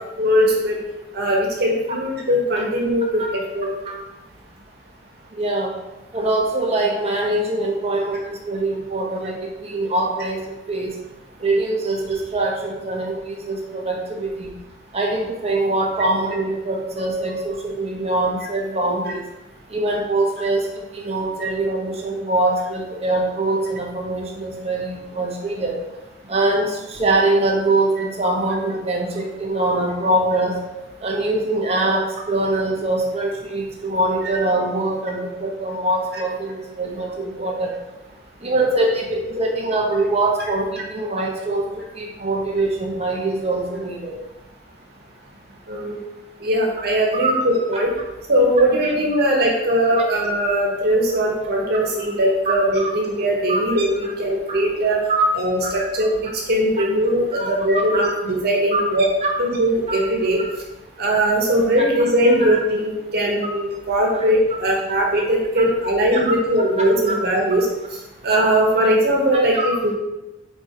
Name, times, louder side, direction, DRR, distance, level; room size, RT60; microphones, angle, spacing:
voice 1, 0.2-0.8 1.1-3.7 21.4-21.5 45.7-46.0 46.4-47.9 48.3-55.0 55.4-56.2 56.5-59.1 59.4-60.4 61.0-67.7 68.2-69.9, right 1 dB, 60° right, -1 dB, 1.5 m, -20 dB
voice 2, 5.3-5.7 6.1-10.4 10.7-11.0 11.4-14.5 14.9-19.2 19.7-25.8 26.3-30.6 31.0-37.7 38.4-41.7 41.9-44.1 47.1-47.3 48.8-48.9 49.9-50.0 52.5-52.6 53.5-53.6 54.0-54.1 54.5-54.6 55.1-55.2 55.6-55.8 56.8-56.9 57.3-57.5 57.9-58.1 58.7-58.8 59.2-59.3 59.9-60.0 62.4-62.5 64.1-64.2 66.1-66.3 66.8-67.2 69.5-69.7, right 2 dB, 35° right, -1 dB, 1.0 m, -23 dB
4.8 x 4.4 x 4.7 m, 1.0 s
head